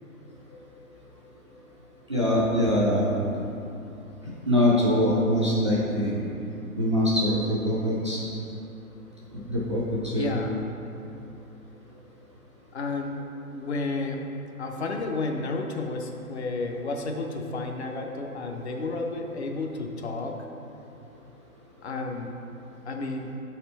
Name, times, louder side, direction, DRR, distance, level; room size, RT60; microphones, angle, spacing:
voice 1, 2.1-3.1 4.5-6.2 6.8-8.2 9.3-10.4, left 1 dB, 20° right, -7 dB, 0.4 m, -23 dB
voice 2, 10.1-10.5 12.7-13.1 13.5-14.2 14.6-20.4 21.8-22.3 22.9-23.3, left 3 dB, 50° left, 2 dB, 0.7 m, -31 dB
7.3 x 4.3 x 4.0 m, 2.8 s
figure-of-eight pair, 125°, 44 cm